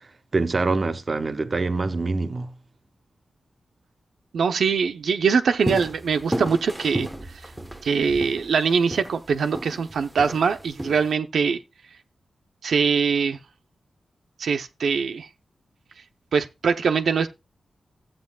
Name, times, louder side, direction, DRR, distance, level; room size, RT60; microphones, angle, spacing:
voice 1, 0.3-2.5, right 3 dB, 40° right, 0.7 m, -25 dB
voice 2, 4.3-7.1 7.8-11.6 12.6-13.4 14.4-15.3 16.3-17.3, right 5 dB, 85° right, 0.6 m, -22 dB
sound 1, 5.6-11.1, equal, 10° right, 0.9 m, -33 dB
14.0 x 7.9 x 2.2 m
wide cardioid pair, 125°, 0 cm